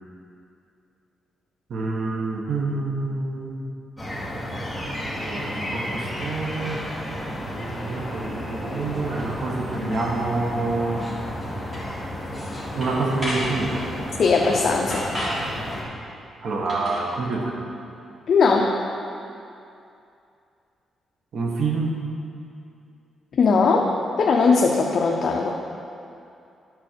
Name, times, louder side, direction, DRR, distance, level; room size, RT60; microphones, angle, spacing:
voice 1, 1.7-3.7 4.7-6.9 7.4-11.1 12.7-13.9 16.4-17.6 21.3-22.0, right 3 dB, 55° right, 0 dB, 1.3 m, -27 dB
sound 1, 4.0-15.8, equal, 5° left, 1.2 m, -32 dB
sound 2, 11.7-11.8 12.3-12.5 12.8-13.5 14.4-14.6 14.9-15.4 16.7-17.0, equal, 20° right, 2.4 m, -31 dB
voice 2, 14.2-15.1 18.3-18.8 23.3-23.9 24.2-25.5, left 4 dB, 50° left, 0 dB, 0.6 m, -19 dB
11.0 x 4.4 x 6.8 m, 2.6 s
cardioid pair, 150°, 0 cm